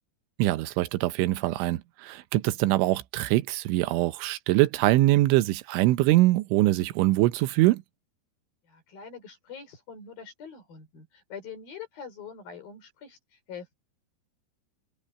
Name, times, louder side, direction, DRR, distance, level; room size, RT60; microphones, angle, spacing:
voice 1, 0.4-7.8, right 17 dB, 85° right, 3.3 m, -23 dB
voice 2, 8.7-13.7, left 6 dB, 50° left, 6.9 m, -44 dB
omnidirectional pair, 5.4 m